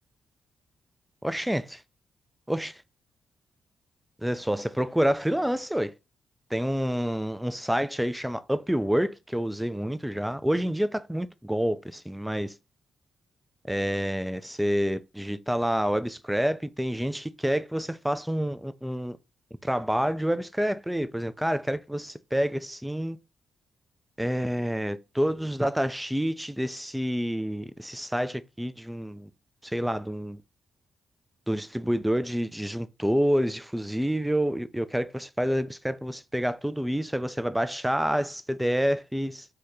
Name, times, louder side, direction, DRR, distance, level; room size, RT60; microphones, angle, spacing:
voice 1, 1.2-1.8 2.5-2.8 4.2-5.9 6.5-12.6 13.7-19.2 19.6-23.2 24.2-29.3 29.6-30.4 31.5-39.5, equal, 5° right, 0.3 m, -28 dB
2.8 x 2.2 x 3.6 m
hypercardioid pair, 40°, 0 cm